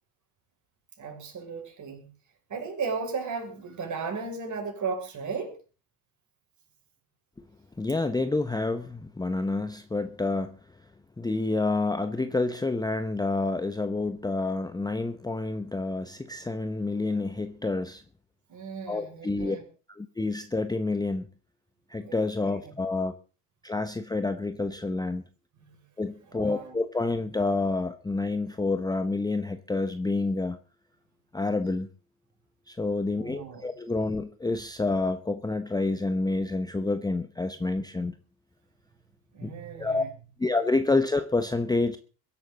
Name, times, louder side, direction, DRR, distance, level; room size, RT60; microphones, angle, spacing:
voice 1, 1.0-2.1 2.5-5.6 18.5-19.6 22.0-22.7 25.5-25.8 26.2-26.8 33.2-33.7 39.3-40.1, right 5 dB, 35° right, 3 dB, 6.4 m, -36 dB
voice 2, 7.8-10.6 11.2-18.0 18.9-19.6 19.9-21.3 21.9-23.1 23.6-25.2 26.0-30.6 31.3-31.9 32.7-38.2 39.4-39.5 39.8-40.0 40.4-42.0, left 3 dB, 10° left, 10 dB, 1.0 m, -28 dB
22.5 x 11.5 x 4.0 m, 0.36 s
hypercardioid pair, 75°, 49 cm